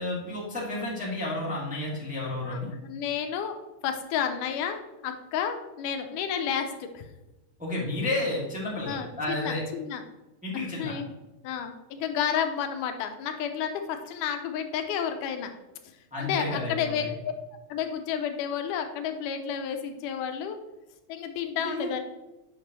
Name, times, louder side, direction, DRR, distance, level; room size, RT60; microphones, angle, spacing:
voice 1, 0.0-2.7 7.6-9.6 10.4-10.9 16.1-17.1 21.6-21.9, left 2 dB, 5° right, -6 dB, 1.4 m, -31 dB
voice 2, 2.4-7.1 8.9-10.0 10.5-11.1 11.4-15.5 16.2-17.3 17.7-20.6 21.1-22.0, left 8 dB, 85° left, 6 dB, 2.2 m, -31 dB
8.6 x 5.9 x 3.0 m, 1.0 s
omnidirectional pair, 3.6 m